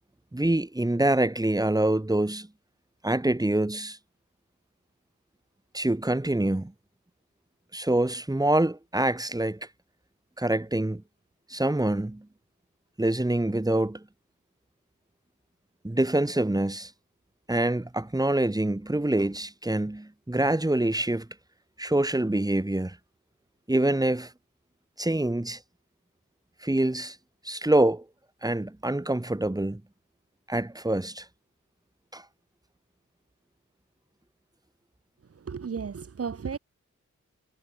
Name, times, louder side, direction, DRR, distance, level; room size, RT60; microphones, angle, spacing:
voice 1, 0.3-2.5 3.0-4.0 5.7-6.7 7.7-9.7 10.4-11.0 11.5-12.3 13.0-14.0 15.8-16.9 17.5-21.3 21.8-23.0 23.7-24.3 25.0-25.6 26.6-27.2 27.4-28.0 28.4-29.8 30.5-31.3 32.1-32.2, right 1 dB, 10° right, 1.5 m, -25 dB
voice 2, 35.4-36.6, right 6 dB, 50° right, 1.0 m, -34 dB
cardioid pair, 60°, 32 cm